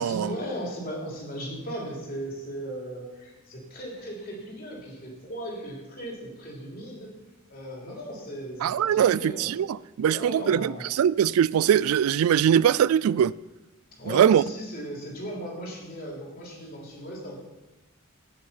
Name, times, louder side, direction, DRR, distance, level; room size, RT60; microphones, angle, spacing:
voice 1, 0.0-7.1 7.5-9.5 10.0-10.9 13.9-17.4, right 1 dB, 40° left, 3.4 m, -37 dB
voice 2, 8.6-13.3 14.1-14.4, right 9 dB, 80° right, 0.3 m, -22 dB
17.5 x 6.4 x 5.7 m
head